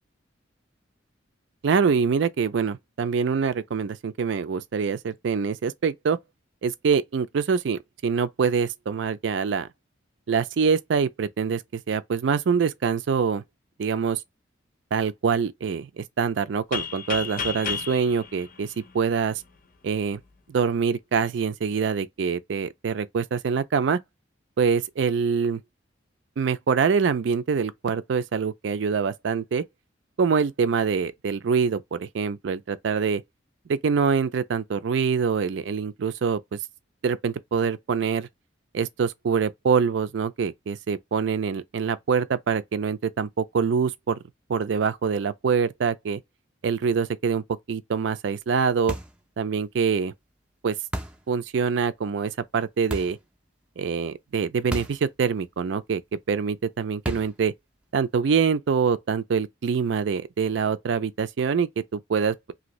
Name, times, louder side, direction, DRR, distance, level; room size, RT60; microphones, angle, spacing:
voice 1, 1.6-6.2 6.6-9.7 10.3-13.4 13.8-14.2 14.9-19.4 19.8-20.2 20.5-24.0 24.6-25.6 26.4-29.6 30.2-33.2 33.7-36.6 37.0-38.3 38.7-44.2 44.5-46.2 46.6-49.0 49.4-50.1 50.6-50.8 51.3-53.2 53.8-56.0 56.3-57.5 57.9-62.5, right 6 dB, 65° right, 0.4 m, -25 dB
sound 1, 16.7-19.5, left 6 dB, 45° left, 0.5 m, -33 dB
sound 2, 48.9-49.3 50.9-51.3 52.9-53.3 54.7-55.1 55.4-55.5 57.1-57.4, right 1 dB, 5° right, 0.4 m, -33 dB
2.8 x 2.6 x 3.0 m
head